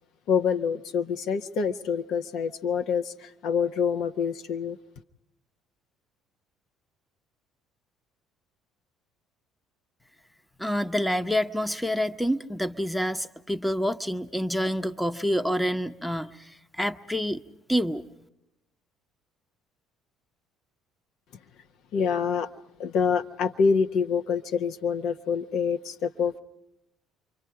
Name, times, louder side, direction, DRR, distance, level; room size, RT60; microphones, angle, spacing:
voice 1, 0.3-4.8 21.9-22.5 22.8-26.4, left 6 dB, 60° left, 6 dB, 1.0 m, -26 dB
voice 2, 10.6-16.5 16.8-17.4 17.7-18.0, equal, ahead, 9 dB, 1.0 m, -27 dB
28.0 x 24.5 x 4.7 m, 0.86 s
figure-of-eight pair, 55°, 0 cm